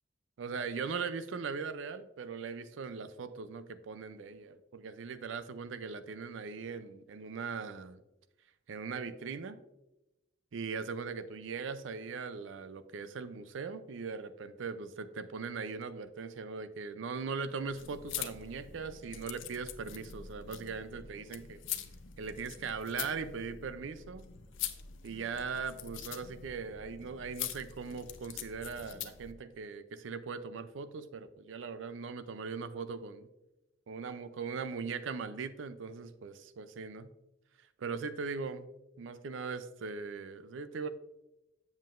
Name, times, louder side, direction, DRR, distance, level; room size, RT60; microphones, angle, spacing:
voice 1, 0.4-8.0 8.7-9.6 10.5-21.6 22.2-24.3 25.0-33.3 33.9-37.1 37.8-38.7 39.0-40.9, right 5 dB, 75° right, 11 dB, 0.4 m, -40 dB
sound 1, 17.7-29.3, left 10 dB, 85° left, 0.5 m, -44 dB
7.6 x 7.2 x 2.5 m, 0.96 s
head